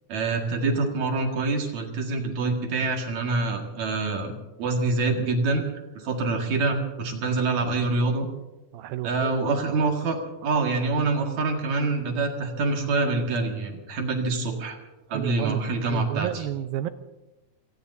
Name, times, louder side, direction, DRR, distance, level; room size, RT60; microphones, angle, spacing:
voice 1, 0.1-4.3 4.6-5.6 6.0-8.3 9.0-14.8 15.1-16.3, right 3 dB, 50° right, 2 dB, 2.8 m, -26 dB
voice 2, 8.7-9.4 15.1-16.9, right 12 dB, 80° right, 11 dB, 2.4 m, -31 dB
29.0 x 18.5 x 2.7 m, 1.0 s
omnidirectional pair, 4.5 m